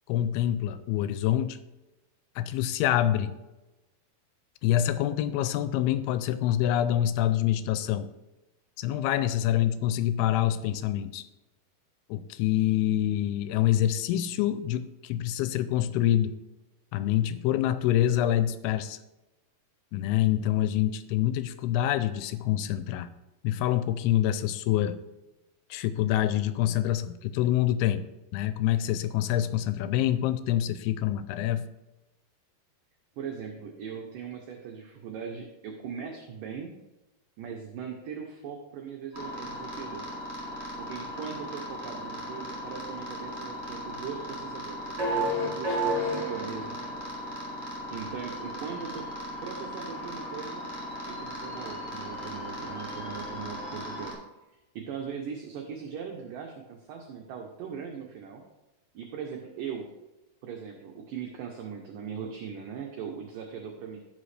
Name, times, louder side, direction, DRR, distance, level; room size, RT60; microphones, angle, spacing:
voice 1, 0.1-1.6 2.4-3.3 4.6-8.1 8.8-11.2 12.1-16.4 16.9-19.0 19.9-23.1 23.4-25.0 25.7-28.0 28.3-31.6, left 12 dB, 85° left, 12 dB, 2.5 m, -26 dB
voice 2, 33.2-36.8 37.4-40.1 40.5-46.9 47.6-49.1 49.4-50.7 51.0-54.2 54.8-58.4 58.9-59.9 60.4-64.0, right 7 dB, 70° right, 2 dB, 2.2 m, -40 dB
sound 1, 39.1-54.1, equal, 35° right, 3.5 m, -35 dB
14.0 x 5.7 x 3.3 m, 1.0 s
omnidirectional pair, 4.5 m